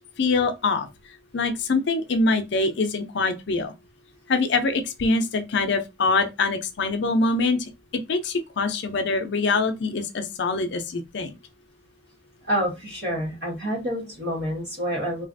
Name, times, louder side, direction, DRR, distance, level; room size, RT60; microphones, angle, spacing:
voice 1, 0.2-0.9 1.3-3.7 4.3-7.6 8.1-11.3, left 3 dB, 60° left, 0.5 m, -24 dB
voice 2, 12.4-15.2, equal, 55° right, 1.6 m, -28 dB
3.2 x 2.4 x 2.5 m
head